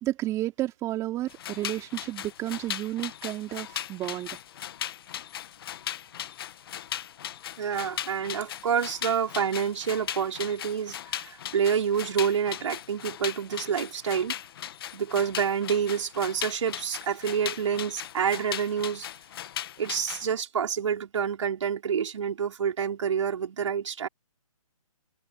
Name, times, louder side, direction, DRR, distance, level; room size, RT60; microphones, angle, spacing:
voice 1, 0.0-4.4, right 15 dB, 15° right, 3.7 m, -32 dB
sound 1, 1.3-20.3, left 11 dB, 40° left, 1.5 m, -38 dB
voice 2, 7.6-14.3 14.9-19.1 19.8-24.1, right 7 dB, 55° right, 4.7 m, -28 dB
hypercardioid pair, 150°, 19 cm